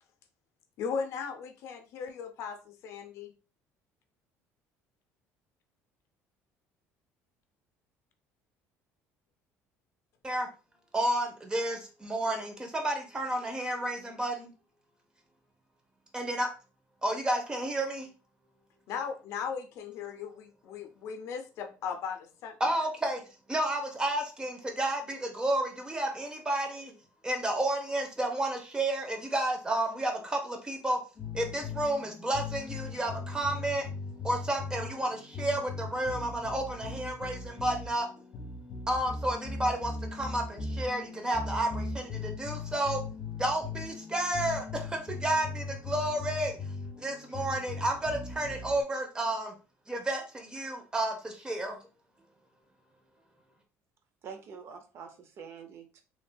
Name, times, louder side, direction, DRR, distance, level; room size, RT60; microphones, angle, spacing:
voice 1, 0.8-3.3 18.9-22.7, left 6 dB, 65° left, 6 dB, 0.5 m, -37 dB
voice 2, 10.9-14.5 16.1-16.5 17.0-18.1 22.6-23.2 23.5-26.9 27.2-31.0 31.3-33.9 34.2-38.1 38.9-43.0 43.4-46.6 47.0-49.5 49.9-51.8, right 1 dB, 15° right, 3 dB, 0.8 m, -31 dB
sound 1, 31.1-48.8, left 3 dB, 40° left, 1.2 m, -39 dB
voice 3, 54.2-56.0, right 6 dB, 50° right, 6 dB, 0.6 m, -46 dB
3.2 x 2.5 x 2.2 m, 0.33 s
cardioid pair, 115°, 5 cm